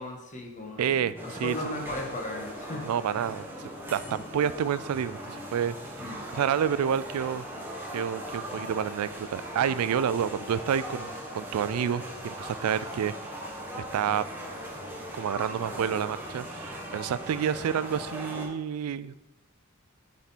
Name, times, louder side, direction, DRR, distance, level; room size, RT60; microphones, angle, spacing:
voice 1, 0.0-3.4 4.0-4.2 6.0-6.3, left 1 dB, 35° left, 1 dB, 1.3 m, -37 dB
voice 2, 0.8-1.6 2.8-3.5 3.9-5.8 6.3-7.5 7.9-13.4 13.8-14.2 15.1-19.1, right 8 dB, 85° right, 16 dB, 0.3 m, -29 dB
sound 1, 1.2-18.5, equal, 10° right, 1.3 m, -39 dB
7.8 x 4.3 x 4.1 m, 0.98 s
head